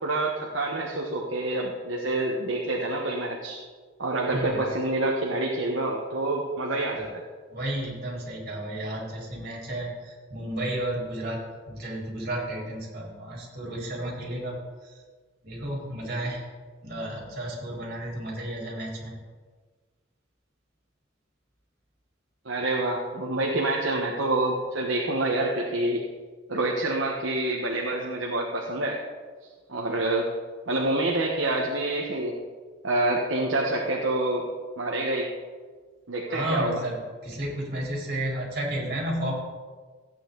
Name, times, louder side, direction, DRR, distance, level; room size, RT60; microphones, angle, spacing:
voice 1, 0.0-3.6 4.0-7.2 22.4-26.0 26.5-29.0 29.7-30.3 30.7-32.4 32.8-34.4 34.8-35.3 36.1-36.8, right 2 dB, 70° right, -1 dB, 1.4 m, -27 dB
voice 2, 4.3-4.7 7.5-14.9 15.4-16.5 16.8-19.1 36.3-39.3, right 1 dB, 50° right, -3 dB, 4.3 m, -32 dB
15.5 x 9.1 x 4.0 m, 1.5 s
head